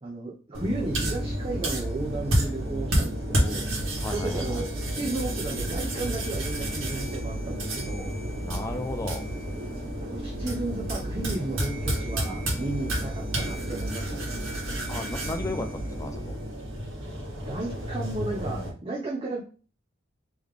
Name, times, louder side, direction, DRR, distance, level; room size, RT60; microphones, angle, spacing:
voice 1, 0.0-3.7 4.1-4.7 5.0-8.1 10.0-14.3 17.4-19.4, right 2 dB, 25° right, -3 dB, 0.7 m, -34 dB
sound 1, 0.5-18.7, right 1 dB, 75° right, 1.5 m, -30 dB
voice 2, 4.0-4.7 8.4-9.3 14.9-16.4, left 2 dB, 15° left, 6 dB, 0.4 m, -35 dB
3.7 x 3.1 x 3.5 m, 0.38 s
head